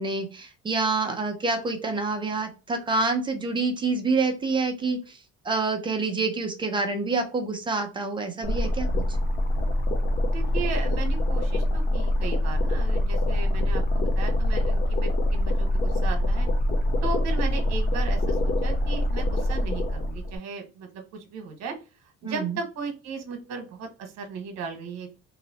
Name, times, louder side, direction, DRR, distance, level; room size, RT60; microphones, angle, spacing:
voice 1, 0.0-5.2 5.4-9.2 22.2-22.6, right 3 dB, 15° right, 4 dB, 0.5 m, -27 dB
sound 1, 8.4-20.4, left 1 dB, 30° left, 0.5 m, -24 dB
voice 2, 10.3-16.5 17.0-21.7 22.2-25.1, right 5 dB, 65° right, 5 dB, 1.2 m, -36 dB
3.1 x 2.9 x 3.9 m, 0.32 s
cardioid pair, 180°, 29 cm